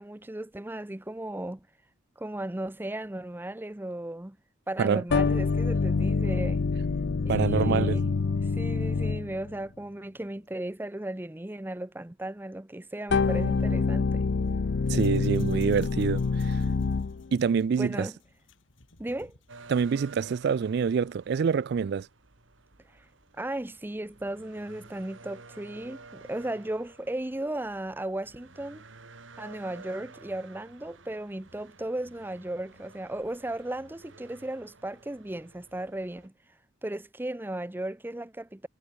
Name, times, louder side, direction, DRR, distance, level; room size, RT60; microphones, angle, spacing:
voice 1, 0.0-1.7 2.2-4.4 4.7-6.6 7.2-8.1 8.3-14.3 17.8-18.2 19.0-19.4 22.9-23.0 23.4-28.8 29.4-36.3 36.8-38.7, right 1 dB, 10° right, 0.6 m, -36 dB
sound 1, 5.1-9.5 13.1-17.3, left 4 dB, 60° left, 0.5 m, -26 dB
voice 2, 7.3-8.0 14.9-16.6 17.3-18.1 19.7-22.1, right 6 dB, 55° right, 0.3 m, -26 dB
sound 2, 14.2-20.4, left 5 dB, 75° left, 3.3 m, -60 dB
sound 3, 19.5-36.3, right 3 dB, 75° right, 2.4 m, -52 dB
head